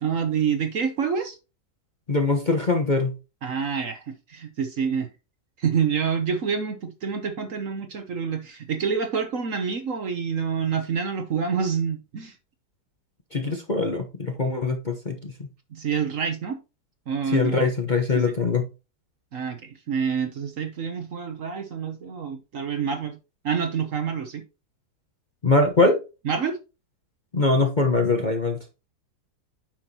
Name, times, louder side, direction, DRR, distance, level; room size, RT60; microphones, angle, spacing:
voice 1, 0.0-1.4 3.4-5.1 5.6-12.3 15.7-16.6 17.1-17.7 18.1-18.3 19.3-23.2 23.4-24.4 26.2-26.6, right 6 dB, 55° right, 1.2 m, -27 dB
voice 2, 2.1-3.1 13.3-15.5 17.3-18.6 25.4-26.0 27.3-28.6, left 3 dB, 30° left, 1.0 m, -22 dB
9.0 x 5.8 x 2.8 m
omnidirectional pair, 1.9 m